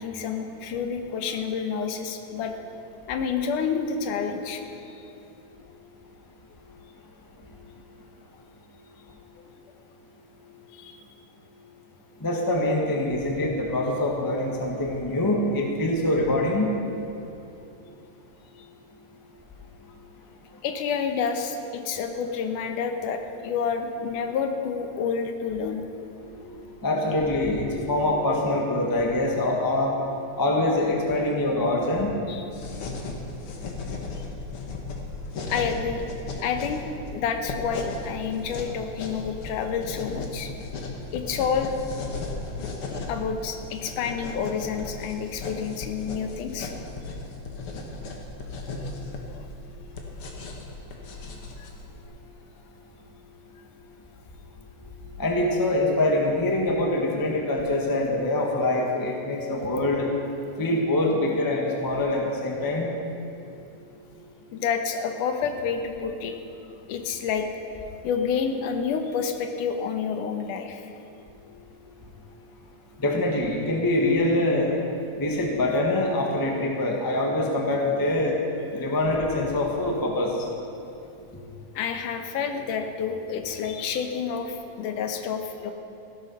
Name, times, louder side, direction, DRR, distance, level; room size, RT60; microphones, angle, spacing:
voice 1, 0.0-2.5 3.1-5.0 10.7-10.9 20.6-25.9 32.3-32.4 35.5-36.0 36.4-36.8 37.1-40.5 41.1-41.7 43.1-46.7 49.3-49.5 51.6-51.7 64.5-66.4 66.9-67.5 68.0-70.9 81.8-85.7, left 6 dB, 90° left, 6 dB, 2.5 m, -29 dB
voice 2, 12.2-16.7 26.4-26.5 26.8-29.9 30.4-32.1 55.2-60.1 60.6-62.9 73.0-74.7 75.2-78.4 78.7-80.3, left 1 dB, 15° left, 0 dB, 0.7 m, -24 dB
sound 1, 32.5-52.0, left 3 dB, 50° left, 2.0 m, -36 dB
16.0 x 12.5 x 5.6 m, 2.7 s
omnidirectional pair, 3.6 m